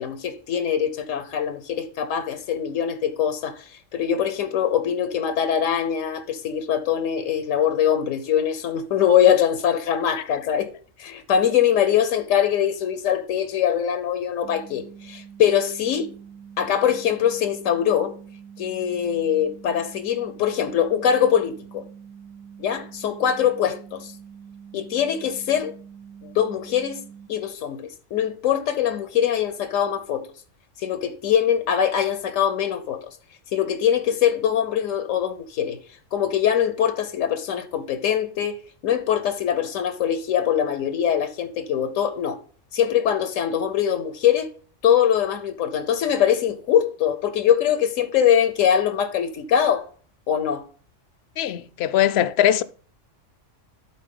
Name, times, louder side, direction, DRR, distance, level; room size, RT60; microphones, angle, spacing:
voice 1, 0.0-10.7 11.0-16.1 16.6-18.1 18.6-21.8 22.6-24.1 24.7-25.7 26.2-27.0 27.3-30.3 30.8-33.1 33.5-35.8 36.1-38.6 38.8-42.4 42.7-44.5 44.8-49.9 50.3-50.6, left 9 dB, 85° left, 1.2 m, -22 dB
sound 1, 14.4-27.3, right 7 dB, 65° right, 1.3 m, -45 dB
voice 2, 51.4-52.6, left 11 dB, 65° left, 0.7 m, -20 dB
12.0 x 4.2 x 3.7 m
omnidirectional pair, 1.3 m